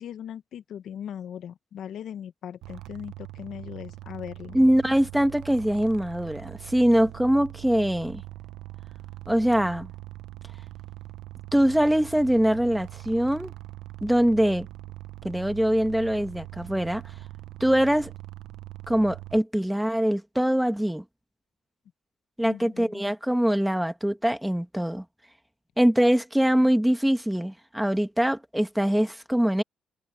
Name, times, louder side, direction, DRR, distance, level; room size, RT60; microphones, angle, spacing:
voice 1, 0.0-4.6 22.4-23.0, left 9 dB, 70° left, 1.2 m, -39 dB
sound 1, 2.6-19.4, right 17 dB, 85° right, 0.8 m, -42 dB
voice 2, 4.5-8.2 9.3-9.9 11.5-13.5 14.0-14.7 15.2-17.0 17.6-18.1 18.9-21.0 22.4-25.0 25.8-29.6, equal, 5° right, 1.6 m, -23 dB
cardioid pair, 90°, 0 cm